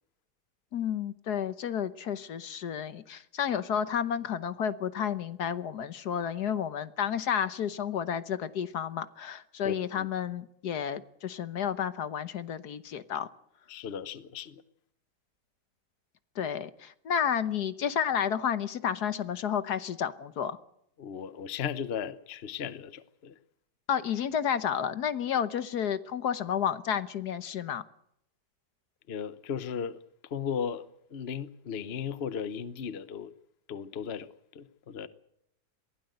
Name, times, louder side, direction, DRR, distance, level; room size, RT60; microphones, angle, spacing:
voice 1, 0.7-13.3 16.4-20.6 23.9-27.8, left 8 dB, 65° left, 1.5 m, -31 dB
voice 2, 9.6-10.1 13.7-14.6 21.0-23.4 29.1-33.3 33.7-35.1, left 7 dB, 45° left, 1.0 m, -36 dB
22.5 x 16.0 x 7.9 m
omnidirectional pair, 1.9 m